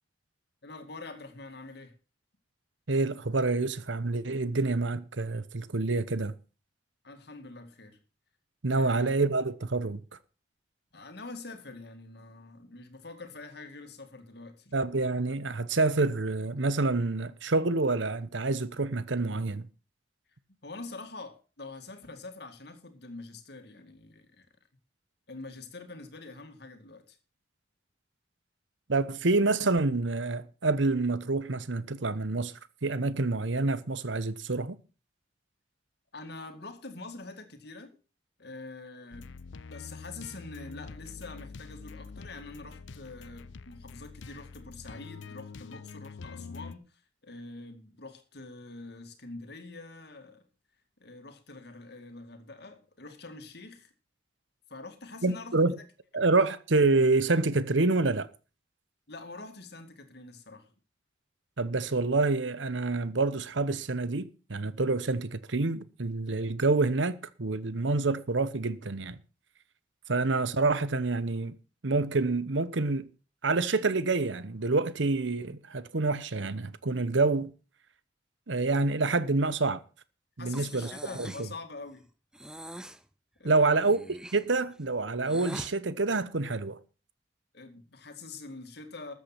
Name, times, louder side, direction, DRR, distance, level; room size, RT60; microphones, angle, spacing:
voice 1, 0.6-2.0 7.0-8.0 8.8-9.1 10.9-14.7 20.6-24.5 25.3-27.2 36.1-38.0 38.4-39.3 39.7-50.5 51.0-53.9 54.7-55.6 56.3-56.4 59.1-60.7 80.4-82.1 83.4-83.9 87.5-89.1, left 3 dB, 60° left, 2.2 m, -45 dB
voice 2, 2.9-6.3 8.6-10.0 14.7-19.7 28.9-32.5 32.8-34.8 55.2-55.7 56.1-58.3 61.6-69.2 70.1-71.6 71.8-73.1 73.4-77.5 78.5-79.8 80.4-80.9 83.4-84.0 84.3-86.8, right 3 dB, 80° right, 1.0 m, -27 dB
sound 1, 39.1-46.7, left 4 dB, 85° left, 0.6 m, -45 dB
Breathing, 80.5-81.5 82.3-83.0 83.8-85.7, right 1 dB, 5° right, 0.6 m, -43 dB
13.5 x 8.4 x 6.0 m
head